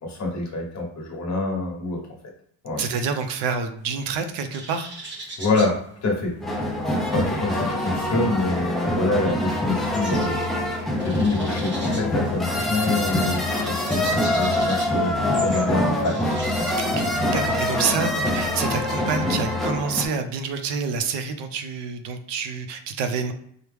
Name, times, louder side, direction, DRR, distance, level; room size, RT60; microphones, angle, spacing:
voice 1, 0.0-2.0 2.6-2.9 5.4-6.6 6.9-15.1 15.4-16.3 16.5-16.7 17.9-18.1, left 3 dB, 40° left, -1 dB, 1.1 m, -26 dB
voice 2, 2.8-4.9 16.8-23.3, right 5 dB, 70° right, 7 dB, 0.6 m, -28 dB
sound 1, 3.8-6.9 7.1-18.7, right 2 dB, 25° right, 0.8 m, -41 dB
sound 2, 6.4-20.0, left 1 dB, ahead, 0.4 m, -24 dB
4.7 x 2.1 x 3.4 m, 0.66 s
cardioid pair, 155°, 44 cm